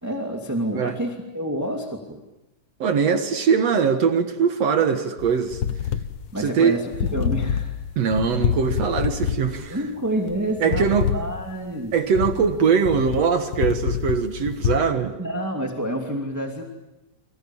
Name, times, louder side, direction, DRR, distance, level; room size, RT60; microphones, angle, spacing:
voice 1, 0.0-2.2 6.3-7.7 9.7-11.9 15.2-16.6, right 1 dB, 5° right, 2.0 m, -28 dB
voice 2, 2.8-5.6 6.4-6.8 8.0-9.8 10.6-11.1 11.9-15.1, right 6 dB, 55° right, 2.4 m, -21 dB
sound 1, 5.2-14.8, left 9 dB, 75° left, 1.0 m, -27 dB
29.5 x 25.5 x 7.2 m
omnidirectional pair, 3.7 m